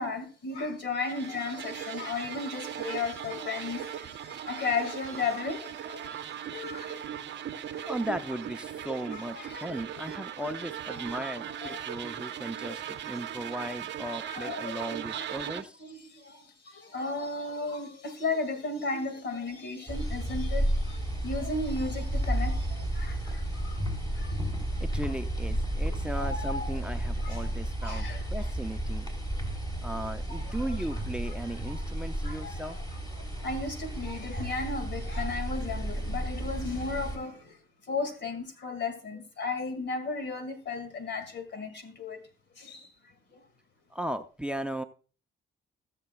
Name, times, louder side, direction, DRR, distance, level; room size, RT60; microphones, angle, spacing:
voice 1, 0.0-7.1 7.7-7.9 9.1-10.0 11.0-11.2 11.6-12.1 12.7-12.8 14.3-14.9 15.1-15.5 15.8-23.8 24.2-24.4 25.8-26.7 27.2-27.5 27.8-28.5 30.3-31.0 31.7-31.8 32.2-32.8 33.2-37.6 37.9-42.2 42.6-42.9 43.3-43.4, left 3 dB, 65° left, 2.3 m, -35 dB
sound 1, 1.1-15.6, right 10 dB, 65° right, 0.7 m, -39 dB
voice 2, 7.8-15.8 24.8-29.1 29.8-32.8 43.9-44.8, right 1 dB, 5° right, 0.6 m, -36 dB
sound 2, 19.9-37.2, right 1 dB, 20° left, 3.3 m, -32 dB
20.0 x 6.8 x 2.4 m
cardioid pair, 90°, 20 cm